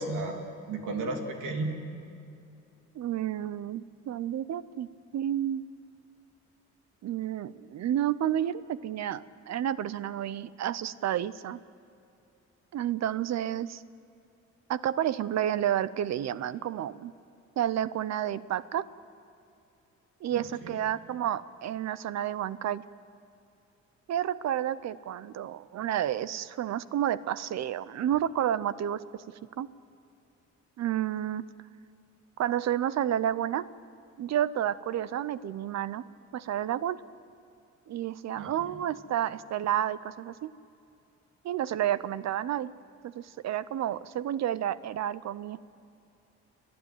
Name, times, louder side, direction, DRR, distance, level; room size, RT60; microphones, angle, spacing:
voice 1, 0.0-1.7 20.3-20.8 38.4-38.5, right 2 dB, 85° right, 3 dB, 3.0 m, -34 dB
voice 2, 3.0-4.9 5.1-5.6 7.0-11.6 12.7-13.8 14.7-17.1 17.6-18.9 20.2-22.8 24.1-29.0 29.6-29.7 30.8-31.4 32.4-33.6 34.2-36.0 36.3-37.0 37.9-40.5 41.4-42.7 43.0-45.6, right 11 dB, 60° right, 17 dB, 0.6 m, -30 dB
30.0 x 10.5 x 8.9 m, 2.6 s
cardioid pair, 90°, 30 cm